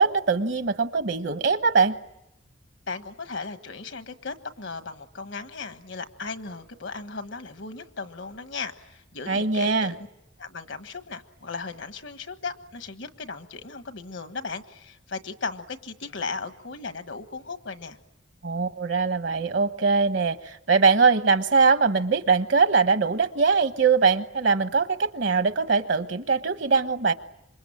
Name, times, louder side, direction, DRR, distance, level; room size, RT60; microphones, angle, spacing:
voice 1, 0.0-1.9 9.3-9.9 18.4-27.1, right 4 dB, 65° right, 10 dB, 1.1 m, -22 dB
voice 2, 2.9-10.1 10.4-18.0, left 4 dB, 75° left, 9 dB, 1.4 m, -36 dB
26.5 x 23.5 x 8.7 m, 0.88 s
head